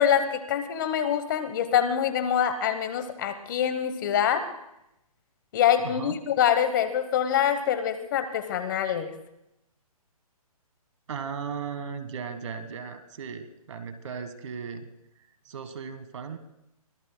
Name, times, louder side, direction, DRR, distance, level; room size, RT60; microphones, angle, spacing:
voice 1, 0.0-4.4 5.5-9.1, left 9 dB, 30° left, 10 dB, 1.0 m, -25 dB
voice 2, 5.8-6.2 11.1-14.9 15.4-16.4, right 6 dB, 50° right, 11 dB, 1.4 m, -36 dB
24.0 x 18.0 x 2.2 m, 0.84 s
hypercardioid pair, 160°, 19 cm